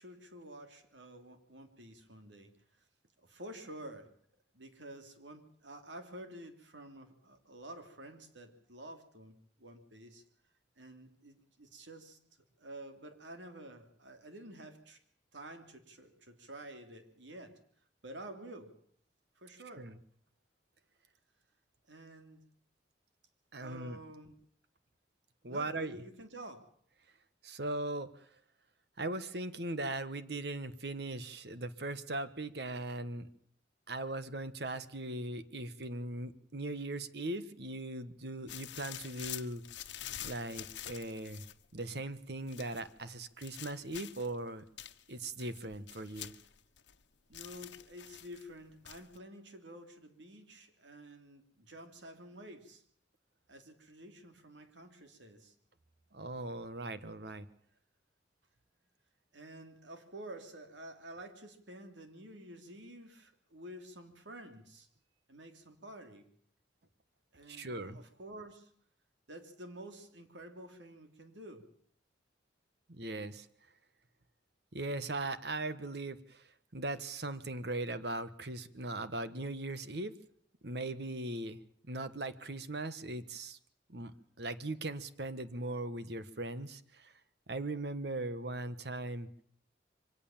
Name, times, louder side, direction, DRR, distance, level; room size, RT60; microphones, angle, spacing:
voice 1, 0.0-2.5 3.2-4.1 4.5-10.2 10.8-12.2 12.6-15.0 15.3-17.5 18.0-18.7 19.4-19.9 21.9-22.4 23.6-24.3 25.5-26.7 47.3-52.8 53.5-55.5 59.3-64.9 65.3-66.3 67.3-68.7 69.3-71.6, right 1 dB, 85° right, 6 dB, 3.1 m, -50 dB
voice 2, 23.5-24.0 25.4-26.0 27.4-28.3 29.0-33.3 33.9-39.6 40.2-41.5 41.7-44.6 45.1-46.3 56.1-57.5 67.5-68.0 72.9-73.5 74.7-80.2 80.6-81.6 81.9-83.6 83.9-84.1 84.4-87.1 87.5-89.3, right 2 dB, 65° right, 12 dB, 1.3 m, -39 dB
sound 1, 38.5-41.6 42.5-42.9 43.4-44.3 44.8-47.0 47.3-48.4 48.8-49.2, left 12 dB, 80° left, 1.1 m, -47 dB
24.0 x 18.0 x 7.3 m, 0.62 s
head